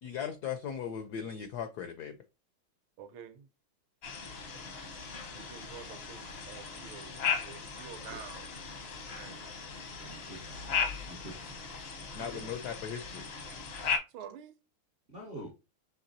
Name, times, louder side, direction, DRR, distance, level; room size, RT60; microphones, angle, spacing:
voice 1, 0.0-2.1 12.1-13.2, left 8 dB, 85° left, 0.9 m, -38 dB
voice 2, 3.0-3.5 5.3-8.5 9.0-9.4 12.1-12.5 14.1-14.5, right 8 dB, 75° right, 1.4 m, -48 dB
sound 1, 4.0-14.0, left 6 dB, 60° left, 0.6 m, -37 dB
voice 3, 9.9-11.6 15.1-15.5, right 1 dB, 60° right, 0.6 m, -47 dB
5.6 x 3.2 x 2.6 m
omnidirectional pair, 2.3 m